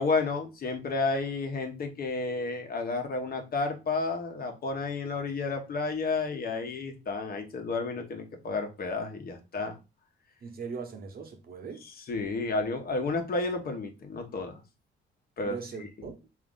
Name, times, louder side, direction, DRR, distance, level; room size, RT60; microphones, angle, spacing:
voice 1, 0.0-9.8 12.1-14.6 15.4-15.6, left 3 dB, 50° left, 1.1 m, -31 dB
voice 2, 10.4-11.8 15.4-16.1, right 5 dB, 50° right, 1.1 m, -39 dB
3.8 x 2.8 x 3.7 m
cardioid pair, 90°, 20 cm